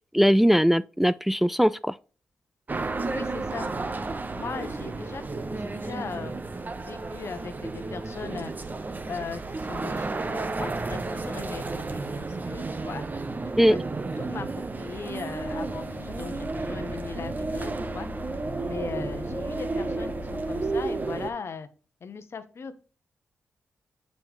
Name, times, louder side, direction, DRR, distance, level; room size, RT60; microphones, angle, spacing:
voice 1, 0.1-1.9 13.6-13.8, equal, 5° right, 0.3 m, -20 dB
sound 1, 2.7-21.3, right 3 dB, 35° right, 0.8 m, -32 dB
voice 2, 3.1-3.7 4.3-5.2 5.5-6.4 6.8-8.5 9.1-13.0 13.6-13.8 14.2-18.1 18.6-21.7 22.0-22.8, left 5 dB, 60° left, 0.9 m, -39 dB
sound 2, 15.4-21.0, left 6 dB, 75° left, 0.5 m, -42 dB
6.9 x 5.3 x 3.0 m
supercardioid pair, 40°, 5 cm